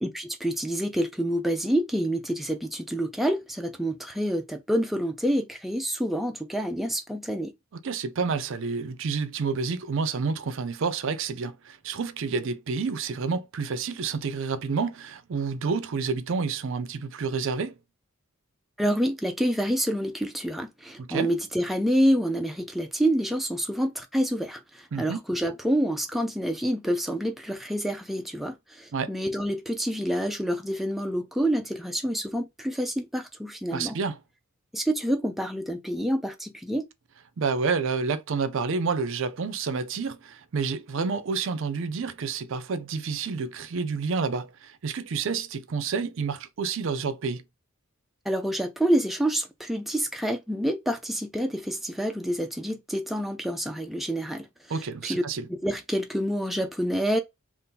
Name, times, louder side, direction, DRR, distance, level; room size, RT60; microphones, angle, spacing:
voice 1, 0.0-7.5 18.8-34.0 34.7-36.9 48.3-54.5 54.8-55.2 55.5-57.2, equal, ahead, 0.3 m, -27 dB
voice 2, 7.8-17.8 21.0-21.3 24.9-25.2 28.9-29.1 33.7-34.2 37.4-47.4 54.7-55.4, right 5 dB, 60° right, 0.4 m, -29 dB
2.7 x 2.5 x 3.6 m
head